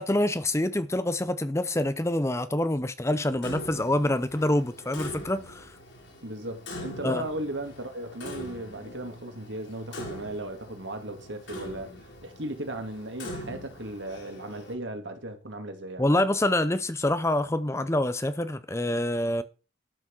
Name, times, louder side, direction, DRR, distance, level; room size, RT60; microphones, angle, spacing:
voice 1, 0.0-5.7 7.0-7.3 16.0-19.4, left 1 dB, 15° left, 0.6 m, -26 dB
Clock, 3.4-14.7, left 1 dB, 65° left, 4.6 m, -42 dB
voice 2, 6.2-11.9 12.2-16.1, right 1 dB, 65° right, 2.5 m, -36 dB
12.5 x 6.2 x 6.2 m
head